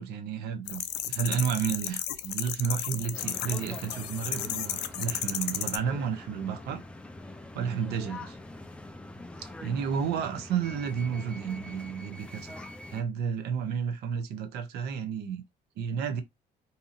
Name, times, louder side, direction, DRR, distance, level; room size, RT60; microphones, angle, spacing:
voice 1, 0.0-6.8 7.5-8.4 9.4-12.6 12.9-15.4 15.8-16.2, right 7 dB, 75° right, 0.6 m, -32 dB
sound 1, 0.7-5.8, left 13 dB, 85° left, 0.4 m, -33 dB
sound 2, 3.1-13.0, left 2 dB, 5° left, 0.4 m, -44 dB
2.7 x 2.7 x 2.5 m
cardioid pair, 110°, 17 cm